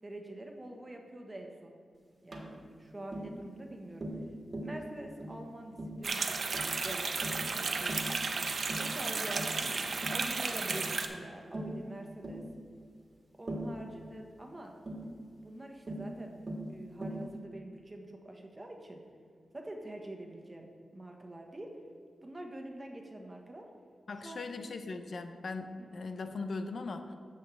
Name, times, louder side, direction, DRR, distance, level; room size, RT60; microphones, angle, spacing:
voice 1, 0.0-1.8 2.2-4.1 4.6-6.5 6.8-8.0 8.8-12.4 13.4-14.7 15.4-16.4 16.7-19.0 19.5-21.7 22.2-23.7 24.2-24.5 25.8-25.9, right 1 dB, 25° right, 2 dB, 1.4 m, -46 dB
Tap, 2.3-2.5 3.1-3.3 4.0-4.3 4.5-4.8 5.2-5.4 5.8-6.0 6.5-6.8 7.2-7.5 7.9-8.1 8.7-8.9 9.4-9.6 10.0-10.3 10.7-10.9 11.5-11.8 12.2-12.4 13.5-13.8 14.9-15.1 15.9-16.1 16.5-16.7 17.0-17.3, right 1 dB, 50° right, 1.7 m, -39 dB
sound 1, 6.0-11.1, right 4 dB, 65° right, 0.8 m, -33 dB
voice 2, 24.1-27.1, left 3 dB, 65° left, 7 dB, 0.7 m, -39 dB
14.5 x 5.5 x 3.4 m, 2.2 s
cardioid pair, 75°, 0 cm